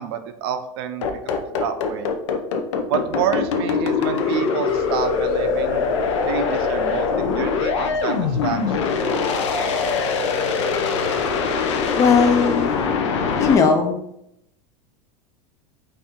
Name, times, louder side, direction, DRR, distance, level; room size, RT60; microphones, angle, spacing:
voice 1, 0.0-2.1 2.9-5.9 6.3-7.1 7.3-8.9, right 8 dB, 60° right, 8 dB, 0.5 m, -28 dB
sound 1, 1.0-13.6, left 5 dB, 90° left, 0.6 m, -22 dB
sound 2, 4.1-13.0, left 4 dB, 50° left, 1.1 m, -39 dB
voice 2, 11.9-12.7 13.4-14.0, left 5 dB, 20° left, 5 dB, 0.3 m, -17 dB
4.3 x 2.7 x 3.6 m, 0.80 s
supercardioid pair, 165°, 15 cm